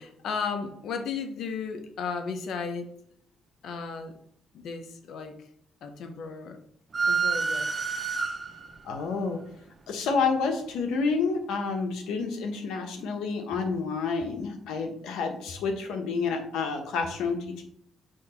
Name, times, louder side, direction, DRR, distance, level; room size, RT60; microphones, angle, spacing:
voice 1, 0.0-2.9 3.6-4.2 4.5-5.4 5.8-6.6 7.0-7.7 14.3-14.5, left 5 dB, 70° left, 6 dB, 1.0 m, -34 dB
sound 1, 6.9-8.8, right 5 dB, 35° right, 0.6 m, -28 dB
voice 2, 8.8-9.4 9.9-17.6, left 4 dB, 90° left, 4 dB, 1.2 m, -29 dB
6.3 x 2.9 x 5.7 m, 0.67 s
cardioid pair, 90°, 0 cm